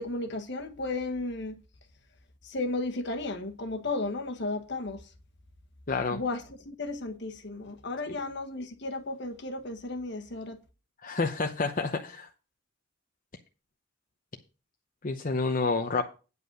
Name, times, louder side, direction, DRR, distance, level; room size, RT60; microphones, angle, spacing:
voice 1, 0.0-1.5 2.4-5.0 6.1-10.6, left 2 dB, 60° left, 1.3 m, -34 dB
voice 2, 5.9-6.2 8.1-8.2 11.0-12.3 15.0-16.0, left 3 dB, 40° left, 0.8 m, -29 dB
9.5 x 5.4 x 6.5 m
head